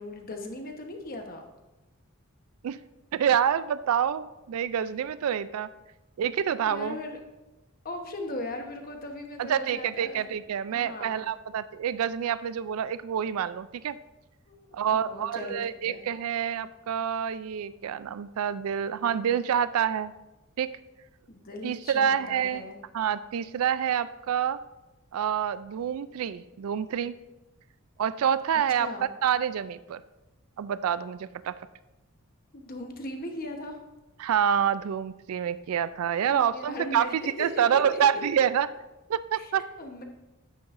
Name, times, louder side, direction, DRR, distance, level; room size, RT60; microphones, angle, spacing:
voice 1, 0.0-1.4 6.7-7.2 7.8-10.3 10.7-11.2 14.5-16.0 21.3-22.8 28.8-29.1 32.5-33.8 36.3-38.0 39.4-40.0, left 1 dB, 40° left, 3 dB, 1.1 m, -38 dB
voice 2, 3.1-5.7 6.2-7.0 9.4-14.0 14.7-20.1 20.6-20.7 21.6-22.6 22.9-24.6 25.1-27.1 28.0-30.0 30.6-31.6 34.2-37.1 37.4-38.7 39.1-39.6, right 8 dB, 75° right, 15 dB, 0.3 m, -27 dB
9.7 x 9.2 x 2.6 m, 1.0 s
head